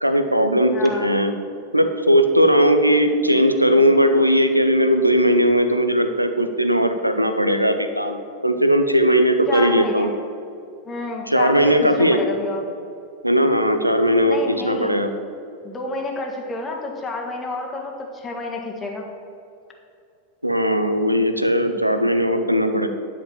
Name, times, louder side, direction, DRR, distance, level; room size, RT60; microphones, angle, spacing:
voice 1, 0.0-1.3 1.7-10.1 11.3-12.2 13.2-15.1 20.4-22.9, equal, 90° right, 8 dB, 0.7 m, -18 dB
voice 2, 0.7-1.1 9.5-10.1 10.9-12.6 14.3-15.0 15.6-19.1, left 2 dB, 15° left, 0 dB, 1.8 m, -29 dB
11.0 x 5.1 x 7.2 m, 2.5 s
figure-of-eight pair, 90°, 0 cm